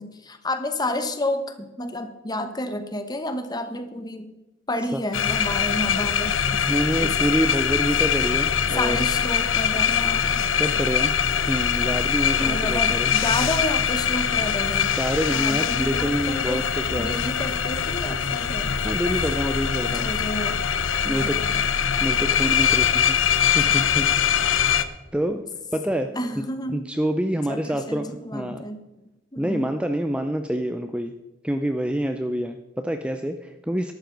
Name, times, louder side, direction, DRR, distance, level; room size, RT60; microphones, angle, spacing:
voice 1, 0.0-4.4 4.7-6.6 7.0-7.3 8.8-10.4 12.4-14.9 15.3-16.6 17.0-18.7 19.9-20.6 21.1-21.6 23.7-23.9 26.1-26.9 27.5-28.8 29.3-29.7, left 1 dB, 20° left, 9 dB, 1.0 m, -30 dB
sound 1, 5.1-24.8, left 8 dB, 80° left, 0.7 m, -23 dB
voice 2, 6.7-9.0 10.4-11.1 11.5-13.1 14.8-17.2 18.8-20.1 21.0-21.4 22.0-23.2 23.5-24.1 24.5-24.7 25.1-25.4 25.7-26.1 26.7-28.6 29.4-31.1 31.4-33.9, equal, 5° right, 7 dB, 0.4 m, -27 dB
13.0 x 11.5 x 3.9 m, 1.1 s
head